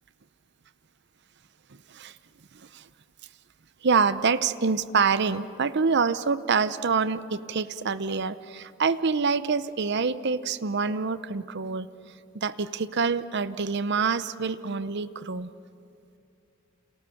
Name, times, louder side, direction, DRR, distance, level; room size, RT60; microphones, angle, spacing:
voice 1, 2.5-2.9 3.8-11.9 12.3-15.5, right 5 dB, 55° right, 15 dB, 0.7 m, -26 dB
29.0 x 27.5 x 7.1 m, 2.6 s
head